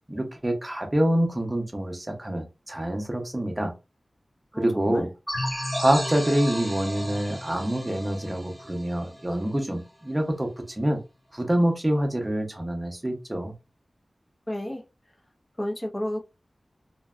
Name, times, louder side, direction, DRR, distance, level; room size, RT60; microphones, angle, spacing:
voice 1, 0.1-3.7 4.6-5.1 5.8-11.0 11.3-13.5, right 1 dB, 20° right, 0.7 m, -26 dB
voice 2, 4.5-5.1 14.5-14.8 15.6-16.3, left 1 dB, 25° left, 0.6 m, -31 dB
sound 1, 5.3-9.7, equal, 10° left, 1.2 m, -34 dB
2.6 x 2.2 x 2.4 m
wide cardioid pair, 80°, 0 cm